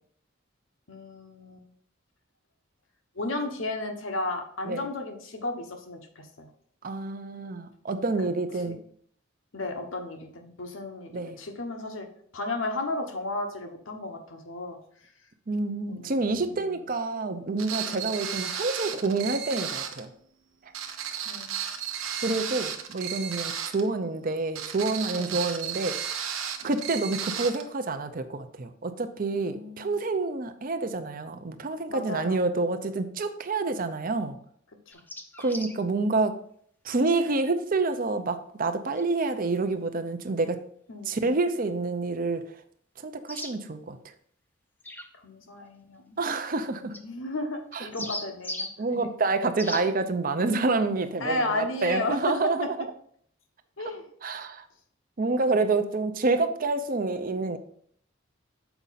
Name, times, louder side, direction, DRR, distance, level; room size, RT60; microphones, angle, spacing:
voice 1, 0.9-1.6 3.1-6.5 8.5-8.8 9.5-12.1 12.3-14.8 15.9-16.9 17.8-18.0 21.2-21.6 23.4-23.6 25.1-25.4 26.6-26.7 29.3-30.0 31.9-32.4 34.9-35.0 40.9-41.2 45.1-46.2 46.8-49.0 51.2-52.3 53.8-54.1, left 2 dB, 80° left, 4 dB, 1.1 m, -34 dB
voice 2, 6.8-8.8 11.1-11.4 15.5-20.1 22.2-26.0 26.6-34.4 35.4-36.3 36.9-40.6 41.1-42.4 43.0-44.0 46.2-46.9 47.7-48.1 48.8-52.7 54.2-54.6 55.2-57.6, right 3 dB, 45° right, 9 dB, 0.6 m, -28 dB
sound 1, 17.6-20.1 20.7-23.9 24.6-27.6, right 8 dB, 85° right, 0.8 m, -34 dB
sound 2, 34.9-35.8 39.0-39.1 43.3-43.5 44.8-45.1 46.9-47.0 47.7-48.7 49.6-49.8, left 1 dB, 10° left, 0.6 m, -37 dB
7.0 x 5.0 x 4.0 m, 0.62 s
head